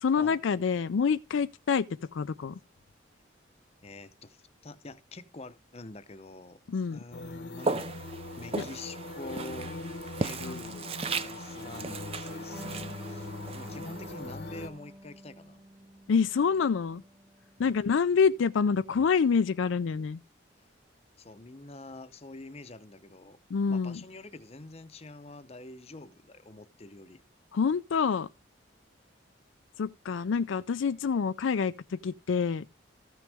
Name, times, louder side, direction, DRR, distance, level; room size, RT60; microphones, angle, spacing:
voice 1, 0.0-1.8 2.1-2.6 6.7-7.0 8.5-8.6 10.4-10.8 16.1-17.0 17.6-20.2 23.5-24.0 27.5-28.3 29.8-32.7, left 6 dB, 75° left, 0.4 m, -27 dB
voice 2, 3.8-6.6 6.9-7.9 8.4-9.7 10.2-15.6 17.6-17.8 20.6-20.7 21.2-23.4 23.7-27.2, left 2 dB, 30° left, 0.7 m, -46 dB
sound 1, 7.1-14.7, left 2 dB, 60° left, 0.9 m, -41 dB
Walk footsteps, 7.6-14.7, right 3 dB, 30° right, 0.5 m, -37 dB
Electric guitar, 12.5-19.7, right 1 dB, 10° right, 1.3 m, -51 dB
14.0 x 6.2 x 3.4 m
head